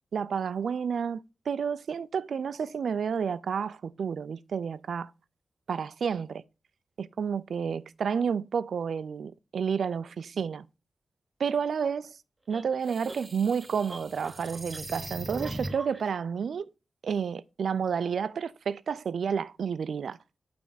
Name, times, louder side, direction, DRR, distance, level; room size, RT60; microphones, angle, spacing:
voice 1, 0.1-5.1 5.7-6.4 7.0-10.6 11.4-12.1 12.5-16.7 17.0-20.2, right 6 dB, 75° right, 0.4 m, -30 dB
sound 1, 12.5-16.0, right 1 dB, 25° right, 0.7 m, -39 dB
8.6 x 3.4 x 4.0 m
wide cardioid pair, 110°, 0 cm